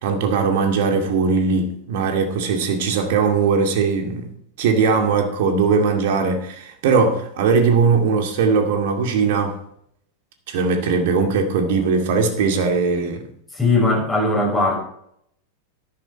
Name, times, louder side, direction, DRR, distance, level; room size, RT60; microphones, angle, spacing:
voice 1, 0.0-4.3 4.6-9.6 10.5-13.3, right 5 dB, 50° right, 2.2 m, -19 dB
voice 2, 13.5-14.8, left 2 dB, 10° left, 6.1 m, -19 dB
12.5 x 11.0 x 4.2 m
figure-of-eight pair, 90°, 0 cm